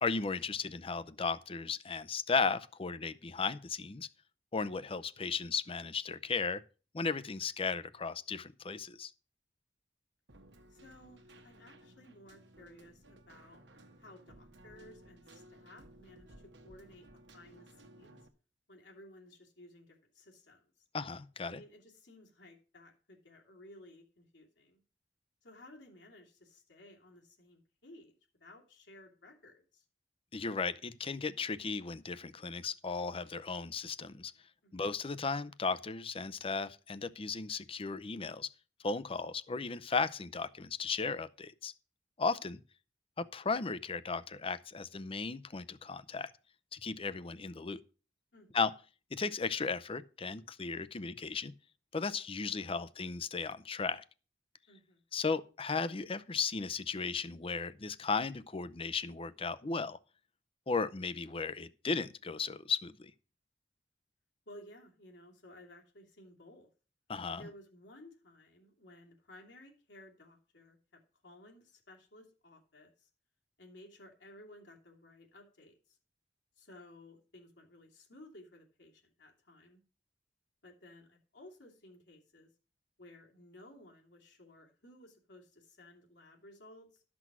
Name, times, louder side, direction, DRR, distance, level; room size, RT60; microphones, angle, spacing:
voice 1, 0.0-4.1 4.5-6.6 6.9-9.1 20.9-21.6 30.3-34.3 34.7-38.5 38.8-41.7 42.2-42.6 43.2-46.3 46.7-47.8 48.5-48.7 49.1-51.5 51.9-54.0 55.1-60.0 60.7-63.1 67.1-67.5, left 4 dB, 30° left, 0.6 m, -35 dB
Keyboard (musical), 10.3-18.3, right 1 dB, 80° right, 1.3 m, -58 dB
voice 2, 10.7-13.6 14.0-18.3 18.7-20.9 21.4-24.8 25.4-29.8 34.6-34.9 48.3-48.6 54.7-55.0 64.5-66.7 67.4-73.1 73.6-76.0 76.6-79.8 80.6-82.5 83.0-87.0, left 1 dB, 80° left, 2.6 m, -57 dB
12.5 x 6.1 x 6.1 m
head